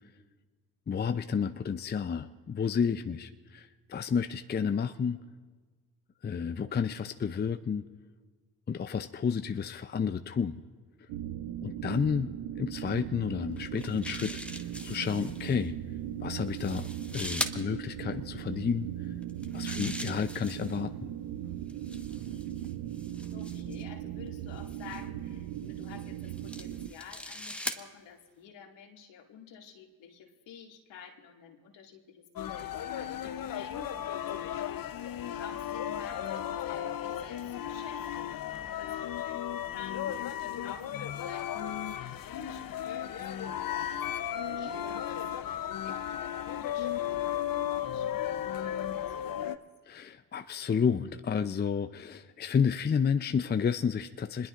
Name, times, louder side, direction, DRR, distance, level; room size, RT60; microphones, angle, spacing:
voice 1, 0.9-5.2 6.2-7.9 8.7-10.6 11.6-12.3 12.5-14.4 14.8-15.8 16.2-19.1 19.5-21.1 49.9-54.5, left 6 dB, 20° left, 9 dB, 0.6 m, -31 dB
sound 1, 11.1-26.9, right 11 dB, 70° right, 0.8 m, -38 dB
sound 2, 13.6-15.5 16.4-17.6 19.2-20.8 21.7-23.8 24.7-25.0 25.8-27.8, left 1 dB, 5° left, 1.3 m, -40 dB
voice 2, 19.6-20.1 23.3-45.1 45.4-49.6, left 7 dB, 65° left, 1 dB, 2.3 m, -51 dB
sound 3, 32.4-49.6, left 10 dB, 45° left, 0.8 m, -35 dB
26.5 x 21.0 x 2.6 m, 1.4 s
hypercardioid pair, 55°, 47 cm